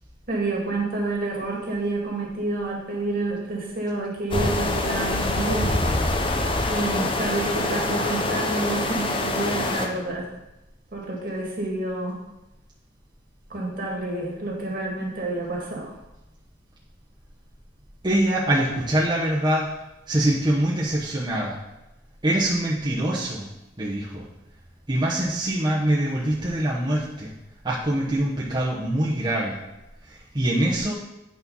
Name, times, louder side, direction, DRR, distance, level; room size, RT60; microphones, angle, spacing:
voice 1, 0.3-5.7 6.7-10.3 10.9-12.1 13.5-16.0, right 2 dB, 50° right, -2 dB, 2.0 m, -28 dB
sound 1, 4.3-9.9, left 2 dB, 30° left, 0.7 m, -25 dB
voice 2, 18.0-19.7 20.1-21.6 22.2-23.5 23.8-24.2 24.9-27.3 27.6-29.6 30.0-30.9, right 1 dB, 25° right, -6 dB, 1.0 m, -24 dB
8.4 x 4.4 x 5.5 m, 0.93 s
head